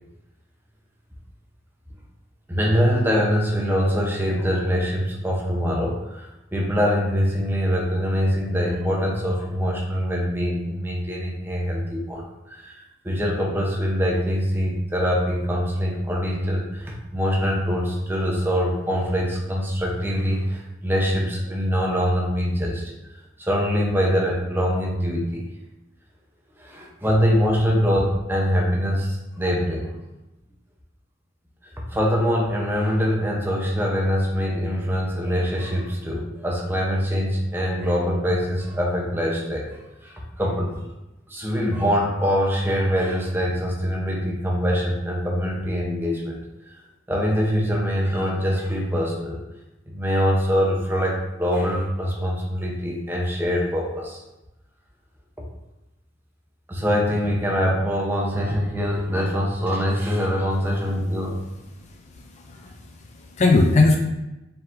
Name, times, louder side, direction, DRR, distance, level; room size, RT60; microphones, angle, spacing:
voice 1, 2.5-22.8 23.4-25.4 26.6-29.9 31.6-40.8 41.3-46.4 47.1-49.4 49.9-54.2 56.7-61.4, equal, 10° right, -2 dB, 0.7 m, -24 dB
voice 2, 61.9-64.0, left 3 dB, 35° left, 2 dB, 0.4 m, -20 dB
4.3 x 3.8 x 2.6 m, 0.97 s
head